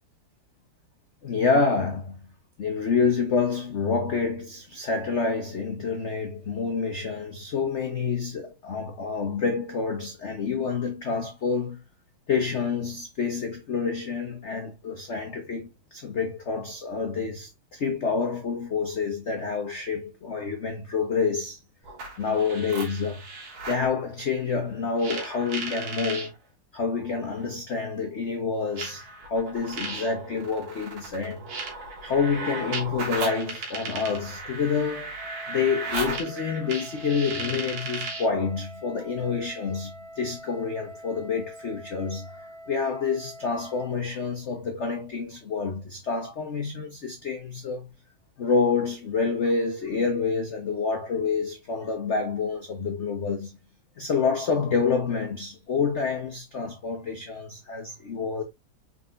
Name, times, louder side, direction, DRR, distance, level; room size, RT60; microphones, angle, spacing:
voice 1, 1.2-2.2 2.6-11.8 12.3-21.6 22.2-23.2 23.7-26.3 26.7-31.5 32.0-35.1 35.5-39.9 40.2-47.9 48.4-53.5 54.0-58.4, left 5 dB, 70° left, 0.6 m, -28 dB
sound 1, 21.8-23.9 25.0-26.3 27.4-27.5 28.8-38.3, right 3 dB, 65° right, 2.1 m, -36 dB
Wind instrument woodwind instrument, 35.1-44.0, equal, 15° left, 2.0 m, -45 dB
4.8 x 4.0 x 2.5 m
omnidirectional pair, 2.3 m